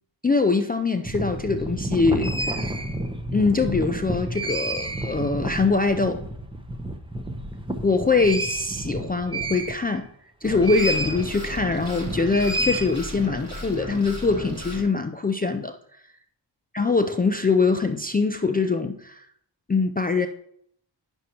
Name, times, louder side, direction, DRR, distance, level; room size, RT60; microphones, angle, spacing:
voice 1, 0.2-2.7 3.3-6.2 7.8-10.1 10.4-15.7 16.7-19.3 19.7-20.3, left 4 dB, 20° left, 0.4 m, -23 dB
sound 1, 1.0-10.1 10.6-11.2 11.5-13.3, right 1 dB, 10° right, 0.8 m, -30 dB
sound 2, 10.4-14.8, equal, 35° right, 1.9 m, -35 dB
8.9 x 6.1 x 2.9 m
cardioid pair, 40°, 46 cm